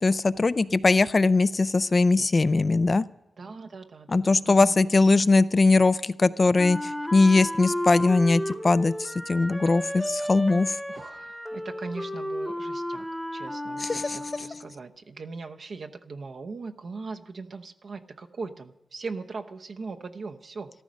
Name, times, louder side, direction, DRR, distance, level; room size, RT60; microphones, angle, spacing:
voice 1, 0.0-3.0 4.1-10.7 13.8-14.2, left 3 dB, 40° left, 16 dB, 0.4 m, -21 dB
voice 2, 3.4-4.7 10.0-10.1 10.9-13.1 13.3-20.7, right 4 dB, 60° right, 4 dB, 0.9 m, -40 dB
Wind instrument woodwind instrument, 6.6-14.7, equal, 5° left, 1.0 m, -33 dB
13.5 x 13.0 x 6.3 m, 0.91 s
cardioid pair, 80°, 0 cm